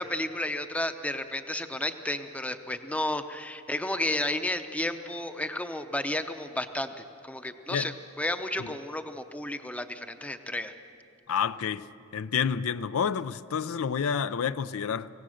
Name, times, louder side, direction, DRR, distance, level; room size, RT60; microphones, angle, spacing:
voice 1, 0.0-6.9 7.2-10.7, left 1 dB, 5° left, 0.6 m, -32 dB
voice 2, 11.3-11.9 12.1-15.1, left 7 dB, 75° left, 0.4 m, -29 dB
25.0 x 16.5 x 6.5 m
head